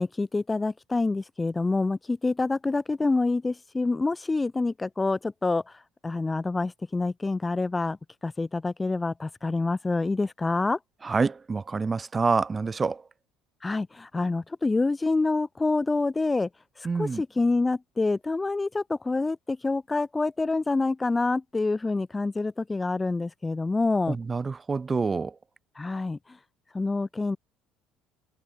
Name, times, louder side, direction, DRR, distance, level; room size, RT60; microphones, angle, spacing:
voice 1, 0.0-8.0 8.2-10.8 13.6-16.5 16.8-24.2 25.7-26.2 26.7-27.4, left 3 dB, 20° left, 1.7 m, -27 dB
voice 2, 11.0-13.1 16.8-17.2 24.1-25.4, right 4 dB, 25° right, 4.0 m, -27 dB
hypercardioid pair, 75°, 0 cm